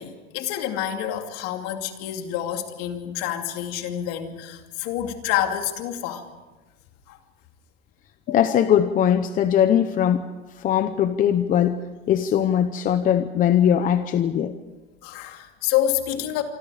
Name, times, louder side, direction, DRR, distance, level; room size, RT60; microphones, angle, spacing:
voice 1, 0.0-6.3 7.1-7.2 8.3-8.4 15.0-16.4, left 11 dB, 50° left, 5 dB, 2.7 m, -28 dB
voice 2, 8.3-10.2 10.6-11.8 12.1-14.6, left 9 dB, 25° left, 10 dB, 0.8 m, -20 dB
26.5 x 25.0 x 5.0 m, 1.2 s
supercardioid pair, 150°, 31 cm